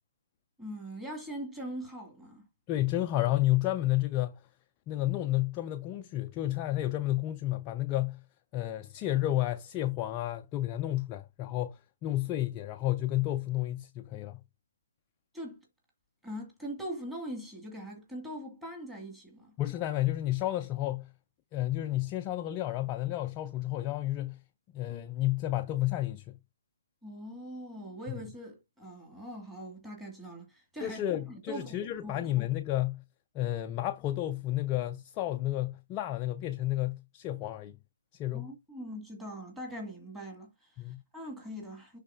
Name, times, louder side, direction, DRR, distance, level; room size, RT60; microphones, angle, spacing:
voice 1, 0.6-2.5 15.3-15.7 16.2-19.6 27.0-32.2 38.3-40.9 41.1-42.0, equal, 5° right, 2.2 m, -42 dB
voice 2, 2.7-4.4 4.9-8.2 8.5-14.4 19.6-21.1 21.5-24.4 24.7-26.4 30.8-33.0 33.3-37.8 38.1-38.5 40.8-41.0, left 15 dB, 20° left, 0.3 m, -31 dB
10.5 x 3.9 x 2.6 m
figure-of-eight pair, 145°, 0 cm